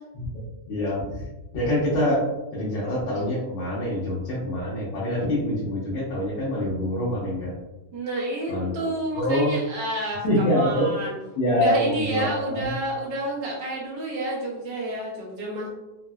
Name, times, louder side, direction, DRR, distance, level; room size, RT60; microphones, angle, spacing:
voice 1, 0.7-1.2 1.5-2.3 2.5-7.6 8.5-8.7 9.1-9.5 10.2-10.9 11.4-12.7, equal, 85° left, -8 dB, 1.5 m, -25 dB
voice 2, 7.9-11.1 11.6-15.7, right 1 dB, 85° right, -4 dB, 1.7 m, -29 dB
4.5 x 2.0 x 2.2 m, 1.0 s
omnidirectional pair, 1.9 m